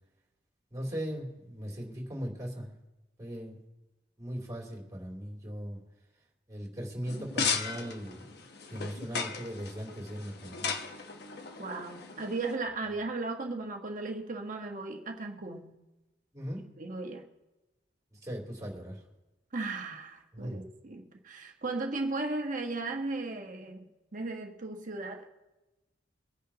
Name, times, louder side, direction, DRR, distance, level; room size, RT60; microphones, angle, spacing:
voice 1, 0.7-2.7 3.2-3.6 4.2-5.8 6.5-8.2 8.7-10.7 16.3-16.6 18.1-19.0 20.3-20.6, equal, 20° right, -3 dB, 3.1 m, -39 dB
sound 1, 7.1-12.6, left 5 dB, 65° left, 1.1 m, -36 dB
voice 2, 11.6-15.8 16.8-17.3 19.5-25.3, right 3 dB, 50° right, 2 dB, 1.2 m, -36 dB
24.5 x 10.0 x 2.9 m, 1.0 s
head